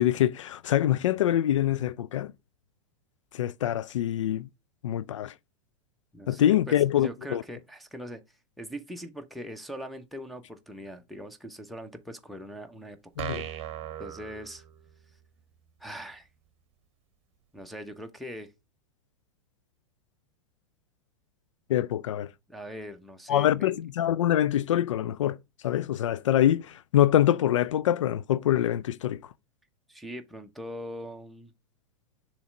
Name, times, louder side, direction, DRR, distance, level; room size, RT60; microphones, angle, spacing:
voice 1, 0.0-2.3 3.3-4.5 4.8-5.3 6.3-7.4 13.2-13.4 21.7-22.3 23.3-25.4 25.6-29.2, left 12 dB, 70° left, 0.4 m, -25 dB
voice 2, 6.1-8.2 8.6-13.0 14.0-14.6 15.8-16.3 17.5-18.5 22.5-23.7 29.9-31.5, equal, ahead, 1.0 m, -41 dB
sound 1, 13.2-15.1, right 11 dB, 35° right, 1.0 m, -38 dB
7.0 x 3.3 x 5.1 m
hypercardioid pair, 100°, 16 cm